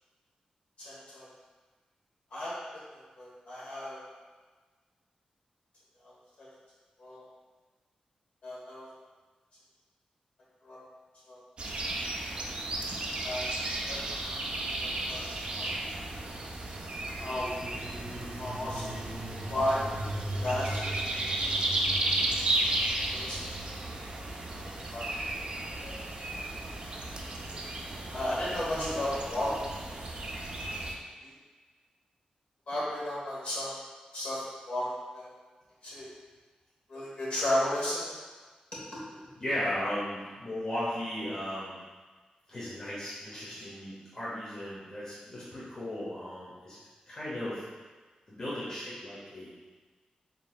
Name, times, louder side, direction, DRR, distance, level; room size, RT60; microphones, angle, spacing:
voice 1, 0.8-1.3 2.3-2.6 2.9-4.0 6.0-6.1 6.4-6.5 7.0-7.2 8.4-8.8 10.6-10.8 11.3-11.4 12.2-12.3 13.2-13.5 13.9-14.0 14.8-15.2 15.5-15.7 16.2-16.3 17.2-17.5 18.4-18.9 19.5-19.8 20.4-20.8 23.1-23.4 24.9-25.4 25.8-26.0 28.1-29.5 29.8-29.9 31.2-31.3 32.7-33.7 34.1-34.8 35.1-35.3 35.8-36.1 36.9-38.1, left 1 dB, 55° left, -7 dB, 1.4 m, -33 dB
sound 1, 11.6-30.9, right 2 dB, 45° right, 0.4 m, -34 dB
sound 2, 13.6-15.2 16.8-29.1, right 1 dB, 65° right, 0.8 m, -42 dB
voice 2, 39.4-41.8 42.5-46.8 47.1-47.7 48.3-49.5, left 1 dB, 30° left, -10 dB, 0.9 m, -36 dB
3.9 x 3.7 x 2.4 m, 1.4 s
wide cardioid pair, 155°, 3 cm